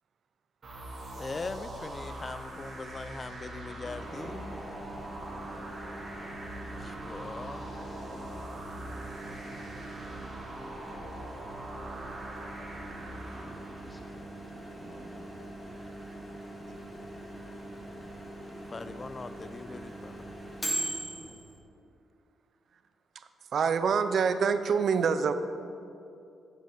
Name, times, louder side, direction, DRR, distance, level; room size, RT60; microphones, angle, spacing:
sound 1, 0.6-14.1, right 1 dB, 45° right, 2.2 m, -42 dB
voice 1, 1.2-4.5 6.8-7.7 18.7-20.2, left 3 dB, 30° left, 12 dB, 0.4 m, -41 dB
Microwave oven, 3.8-21.6, right 1 dB, 15° left, 1.8 m, -42 dB
voice 2, 12.9-15.3 20.9-21.4, right 1 dB, 10° right, 2 dB, 1.2 m, -51 dB
voice 3, 23.5-25.3, right 6 dB, 65° right, 10 dB, 0.5 m, -25 dB
8.0 x 6.7 x 5.3 m, 2.6 s
cardioid pair, 90°, 0 cm